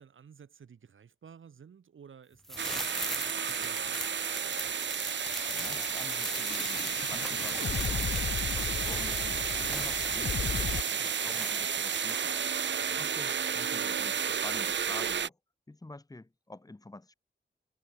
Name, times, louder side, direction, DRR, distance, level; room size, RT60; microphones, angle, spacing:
voice 1, 0.0-4.1 12.8-13.1, right 7 dB, 80° right, 2.4 m, -54 dB
sound 1, 2.4-12.4 12.7-12.8, equal, ahead, 0.7 m, -41 dB
sound 2, 2.6-15.3, right 7 dB, 65° right, 0.9 m, -32 dB
sound 3, 5.2-10.8, left 7 dB, 60° left, 0.8 m, -36 dB
voice 2, 5.5-12.4 12.9-15.4 15.7-17.1, left 2 dB, 20° left, 1.8 m, -48 dB
wide cardioid pair, 155°, 20 cm